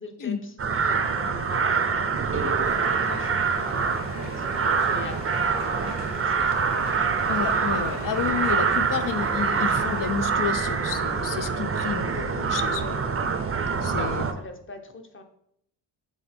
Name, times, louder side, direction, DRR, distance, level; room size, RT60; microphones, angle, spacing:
voice 1, 0.0-2.3 2.6-6.6 12.6-12.9 13.7-15.2, left 2 dB, 25° left, 5 dB, 0.9 m, -42 dB
sound 1, 0.6-14.3, right 5 dB, 30° right, 0.7 m, -25 dB
sound 2, 2.6-10.2, left 4 dB, 75° left, 1.2 m, -41 dB
voice 2, 7.3-13.1 13.8-14.2, left 7 dB, 45° left, 11 dB, 0.6 m, -30 dB
7.2 x 3.8 x 4.3 m, 0.71 s
wide cardioid pair, 125°, 44 cm